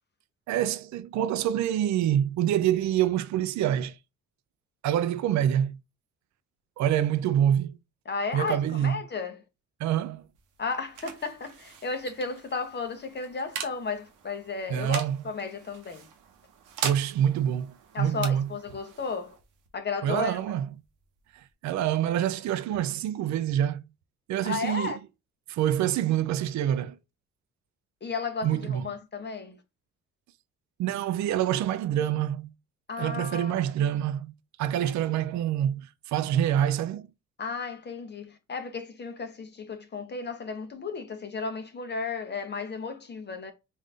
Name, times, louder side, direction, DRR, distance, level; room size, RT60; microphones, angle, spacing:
voice 1, 0.5-4.0 4.8-5.8 6.8-7.8 8.3-9.0 9.8-10.2 14.7-15.2 16.8-18.5 20.0-20.7 21.3-23.8 24.3-24.9 25.5-27.0 28.4-28.9 30.8-32.5 33.0-34.3 34.6-37.1, right 10 dB, 70° right, 0.5 m, -26 dB
voice 2, 8.1-9.4 10.6-16.1 17.9-19.4 19.7-20.4 24.4-25.0 28.0-29.6 32.9-33.5 34.8-34.9 37.4-43.5, left 4 dB, 35° left, 0.7 m, -34 dB
sound 1, 10.2-21.5, right 7 dB, 90° right, 0.9 m, -42 dB
3.7 x 2.6 x 3.2 m
cardioid pair, 90°, 30 cm